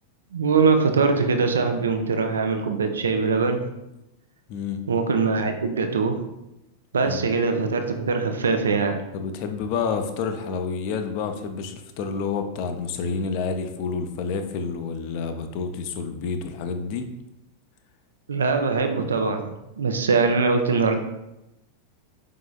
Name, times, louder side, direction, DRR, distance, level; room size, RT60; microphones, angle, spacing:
voice 1, 0.3-3.6 4.9-6.2 6.9-9.0 18.3-21.0, right 4 dB, 70° right, 6 dB, 0.5 m, -22 dB
voice 2, 4.5-4.8 7.0-7.3 9.1-17.1, left 5 dB, 45° left, 7 dB, 0.5 m, -29 dB
4.9 x 3.7 x 2.3 m, 0.91 s
figure-of-eight pair, 90°, 0 cm